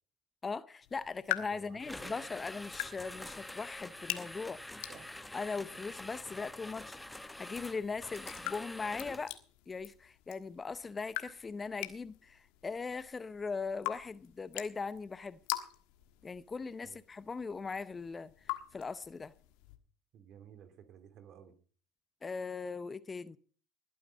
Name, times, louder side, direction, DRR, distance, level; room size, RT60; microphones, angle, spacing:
voice 1, 0.4-4.6 5.3-9.4 9.7-15.4 16.2-19.3 22.2-23.4, left 4 dB, 25° left, 0.7 m, -40 dB
sound 1, 0.8-19.8, left 18 dB, 70° left, 1.4 m, -45 dB
voice 2, 1.5-2.3 4.8-5.2 16.8-17.0 20.1-21.5, right 8 dB, 55° right, 2.9 m, -55 dB
sound 2, 1.8-9.4, left 1 dB, 5° left, 1.0 m, -46 dB
20.5 x 9.5 x 5.3 m
hypercardioid pair, 80°, 0 cm